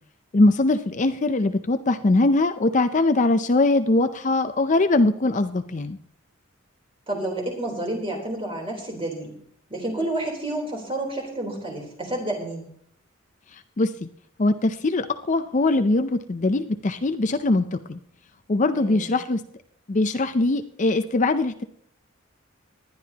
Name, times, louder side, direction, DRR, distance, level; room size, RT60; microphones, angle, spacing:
voice 1, 0.3-6.0 13.8-14.1 14.4-18.0 18.5-19.4 19.9-21.6, left 2 dB, 35° left, 9 dB, 0.5 m, -21 dB
voice 2, 7.1-9.3 9.7-12.7 18.7-19.1, right 1 dB, 25° right, 0 dB, 3.7 m, -30 dB
19.5 x 11.0 x 2.9 m, 0.62 s
head